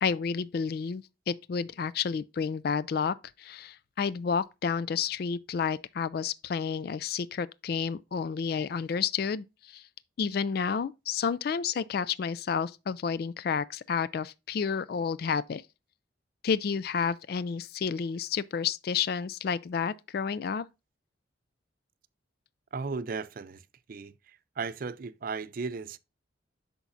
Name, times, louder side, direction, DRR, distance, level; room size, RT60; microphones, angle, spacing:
voice 1, 0.0-9.9 10.2-15.6 16.4-20.7, left 6 dB, 50° left, 0.3 m, -30 dB
voice 2, 22.7-23.6 23.9-24.1 24.6-26.0, right 4 dB, 45° right, 0.4 m, -35 dB
8.2 x 5.9 x 2.6 m
head